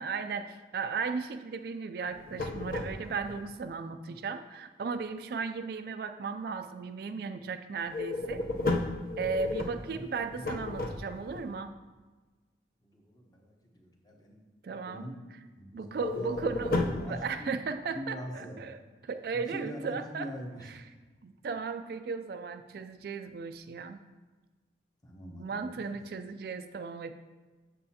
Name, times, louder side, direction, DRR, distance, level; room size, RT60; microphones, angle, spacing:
voice 1, 0.0-8.4 9.2-11.7 14.6-15.1 15.7-18.8 19.0-20.3 20.6-20.8 21.2-24.0 25.4-27.1, right 5 dB, 55° right, 9 dB, 0.3 m, -36 dB
sound 1, 2.1-3.4 7.9-11.4 15.9-17.2, left 2 dB, 50° left, 0.6 m, -33 dB
voice 2, 9.7-10.5 12.8-14.5 14.9-15.1 15.6-17.5 17.9-18.6 19.3-20.7 25.0-26.0, equal, 20° left, 1 dB, 0.9 m, -43 dB
7.7 x 7.1 x 2.8 m, 1.3 s
head